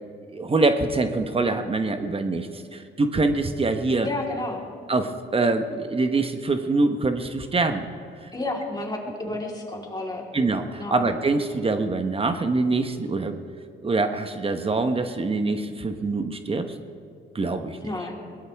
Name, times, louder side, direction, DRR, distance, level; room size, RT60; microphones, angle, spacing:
voice 1, 0.3-4.1 4.9-7.9 8.2-8.3 10.3-13.4 13.8-16.8 17.3-17.9, right 3 dB, 30° right, 7 dB, 1.1 m, -24 dB
voice 2, 4.0-4.6 8.3-10.3 10.8-11.0 17.8-18.2, left 2 dB, 20° left, -2 dB, 3.8 m, -31 dB
22.5 x 18.0 x 3.5 m, 2.3 s
cardioid pair, 90°, 20 cm